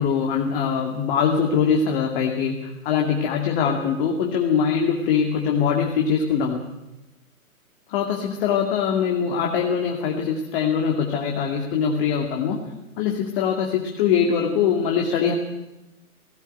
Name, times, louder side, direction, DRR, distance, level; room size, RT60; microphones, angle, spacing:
voice 1, 0.0-6.6 7.9-12.6 13.0-15.3, left 7 dB, 35° left, 1 dB, 2.5 m, -22 dB
18.0 x 17.5 x 9.2 m, 0.97 s
figure-of-eight pair, 130°, 45 cm